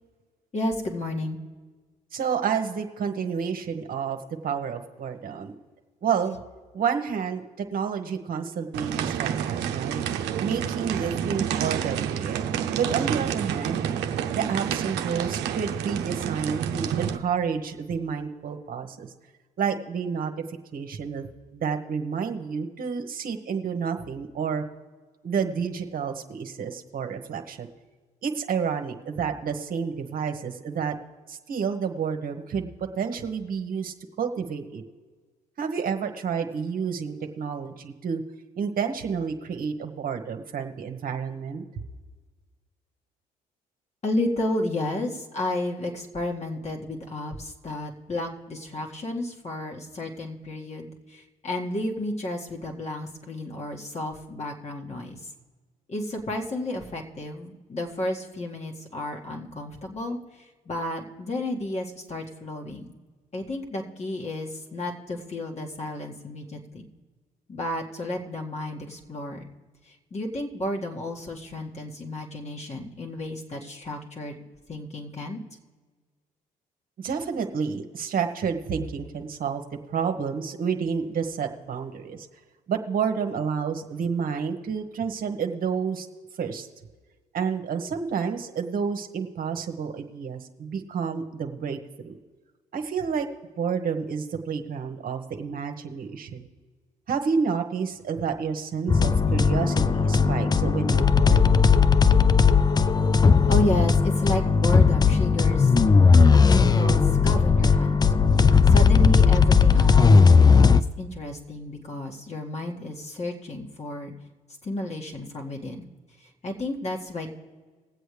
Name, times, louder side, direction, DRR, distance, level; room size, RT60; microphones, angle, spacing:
voice 1, 0.5-1.4 44.0-55.2 55.9-60.2 60.7-62.9 63.3-66.9 67.5-69.5 70.1-74.4 74.7-75.4 103.5-105.7 106.3-108.0 108.7-114.1 114.6-115.9 116.4-117.3, left 1 dB, 40° left, 1 dB, 2.0 m, -32 dB
voice 2, 2.1-4.2 4.4-5.5 6.0-6.4 6.7-10.0 10.4-13.8 14.3-19.1 19.6-24.6 25.2-27.7 28.2-30.9 31.3-32.7 33.0-34.8 35.6-38.2 38.6-41.6 77.0-79.6 79.9-82.2 82.7-86.1 86.4-86.7 87.3-92.2 92.7-93.3 93.6-96.5 97.1-101.5, right 6 dB, 55° right, 5 dB, 1.2 m, -30 dB
sound 1, 8.7-17.2, right 9 dB, 70° right, 0.7 m, -29 dB
sound 2, 98.9-110.8, left 5 dB, 20° left, 0.5 m, -17 dB
20.0 x 8.0 x 3.3 m, 1.4 s
hypercardioid pair, 60°, 18 cm